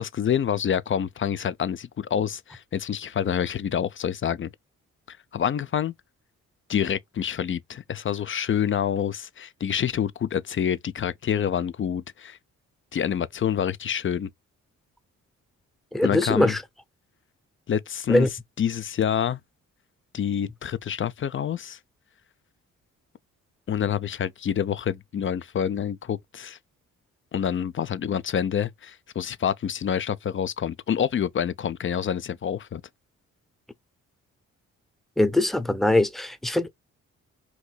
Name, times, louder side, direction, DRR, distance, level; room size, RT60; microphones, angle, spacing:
voice 1, 0.0-4.5 5.1-5.9 6.7-12.4 12.9-14.3 16.0-16.5 17.7-18.3 18.6-19.4 20.1-21.8 23.7-26.6 27.3-32.8, left 8 dB, 40° left, 0.5 m, -27 dB
voice 2, 15.9-16.6 18.1-18.3 35.2-36.7, left 1 dB, ahead, 0.7 m, -22 dB
4.5 x 2.6 x 2.2 m
cardioid pair, 70°, 32 cm